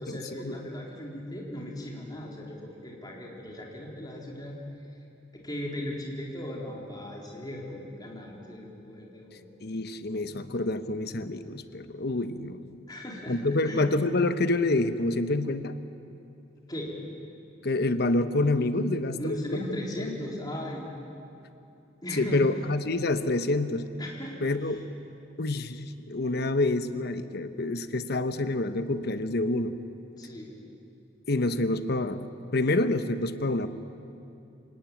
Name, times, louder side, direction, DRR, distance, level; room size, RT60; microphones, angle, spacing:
voice 1, 0.0-4.6 5.3-9.5 12.9-13.9 16.7-16.9 19.1-20.9 22.0-22.5 24.0-24.8 30.2-30.5, left 1 dB, 20° left, -2 dB, 4.0 m, -37 dB
voice 2, 9.6-12.8 13.3-15.7 17.6-19.8 22.1-23.9 24.4-24.8 25.4-29.8 31.3-33.7, left 2 dB, 55° left, 11 dB, 1.0 m, -27 dB
27.0 x 18.0 x 9.0 m, 2.7 s
head